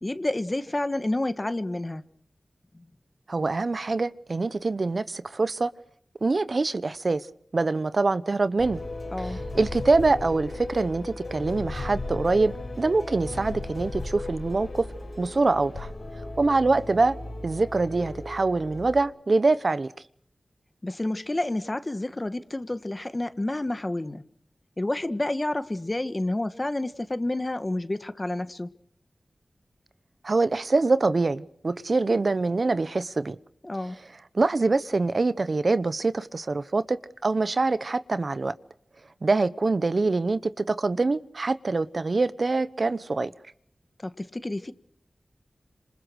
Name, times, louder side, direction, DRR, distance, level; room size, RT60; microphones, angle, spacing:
voice 1, 0.0-2.0 2.7-2.8 9.1-9.4 20.8-24.2 24.8-28.7 33.6-34.0 44.0-44.7, left 1 dB, 35° left, 1.6 m, -29 dB
voice 2, 3.3-5.7 6.2-7.2 7.5-8.8 9.2-14.9 15.2-15.9 16.4-17.2 17.4-19.9 30.2-33.4 34.3-37.0 37.2-38.5 39.2-43.3, right 3 dB, 65° right, 1.0 m, -24 dB
sound 1, 8.6-19.0, left 2 dB, 75° left, 5.9 m, -36 dB
27.0 x 26.0 x 6.4 m
cardioid pair, 40°, 0 cm